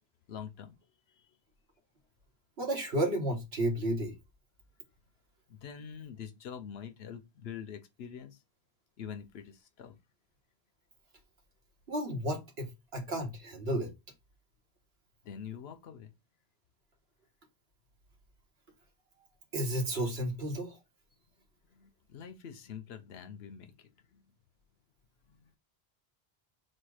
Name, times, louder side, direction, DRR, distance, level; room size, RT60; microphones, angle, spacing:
voice 1, 0.3-0.8 1.1-1.3 5.5-8.4 9.0-9.9 15.2-16.1 21.7-24.2 25.3-25.5, left 8 dB, 80° left, 0.9 m, -45 dB
voice 2, 2.6-4.1 11.9-13.9 19.5-20.8, right 1 dB, 75° right, 1.5 m, -32 dB
4.3 x 2.3 x 4.7 m
omnidirectional pair, 1.1 m